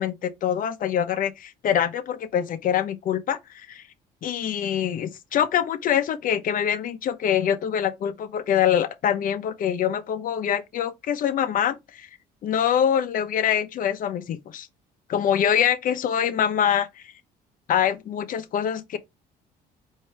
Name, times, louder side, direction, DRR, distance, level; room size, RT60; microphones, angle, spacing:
voice 1, 0.0-3.8 4.2-12.1 12.4-14.7 15.1-16.9 17.7-19.0, left 9 dB, 55° left, 0.7 m, -24 dB
4.5 x 2.7 x 3.3 m
cardioid pair, 110°, 17 cm